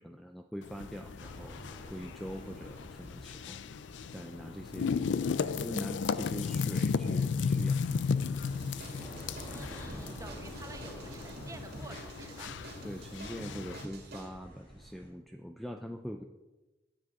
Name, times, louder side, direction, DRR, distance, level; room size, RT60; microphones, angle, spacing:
voice 1, 0.0-3.6 4.1-5.2 5.5-8.1 12.8-16.2, equal, ahead, 4 dB, 0.4 m, -43 dB
sound 1, 0.6-13.8, left 5 dB, 80° left, 0.4 m, -35 dB
sound 2, 1.2-15.1, equal, 25° left, 3.4 m, -50 dB
sound 3, 8.4-14.3, right 1 dB, 60° right, 2.3 m, -47 dB
voice 2, 9.5-12.5, right 2 dB, 20° right, 6 dB, 0.9 m, -49 dB
9.9 x 8.3 x 4.7 m, 1.1 s
head